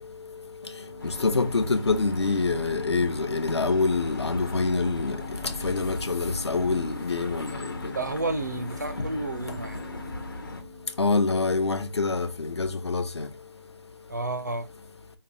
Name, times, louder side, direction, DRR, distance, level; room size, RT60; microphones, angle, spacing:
sound 1, 0.6-12.0, left 2 dB, 20° left, 0.9 m, -43 dB
sound 2, 1.0-10.6, left 2 dB, 45° left, 1.1 m, -38 dB
voice 1, 1.2-5.2 5.6-7.5 11.0-13.3, left 3 dB, 65° left, 0.9 m, -25 dB
voice 2, 7.9-9.8 14.1-14.7, right 2 dB, 40° right, 0.4 m, -31 dB
5.5 x 2.1 x 3.7 m
figure-of-eight pair, 175°, 15 cm